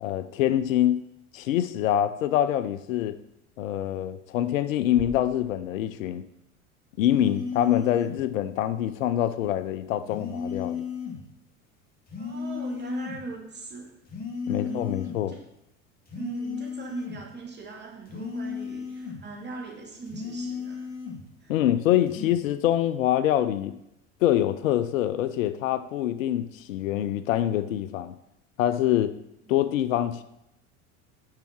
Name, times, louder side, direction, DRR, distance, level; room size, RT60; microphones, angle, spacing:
voice 1, 0.0-1.0 1.3-3.2 3.6-6.2 7.0-10.9 14.5-15.3 21.5-23.7 24.2-28.1 28.6-29.1 29.5-30.2, left 12 dB, 75° left, 12 dB, 0.6 m, -25 dB
sound 1, 5.0-7.0, right 4 dB, 80° right, 1.1 m, -46 dB
sound 2, 7.1-8.2 10.1-11.2 12.1-13.2 14.1-15.2 16.1-17.2 18.1-19.2 20.1-21.2 22.1-22.4, left 6 dB, 20° left, 2.3 m, -35 dB
voice 2, 12.2-13.9 14.5-15.0 15.3-15.4 16.1-20.9 21.4-21.5 29.5-29.6, right 4 dB, 25° right, -1 dB, 2.7 m, -40 dB
6.9 x 5.7 x 6.0 m, 0.83 s
hypercardioid pair, 70°, 40 cm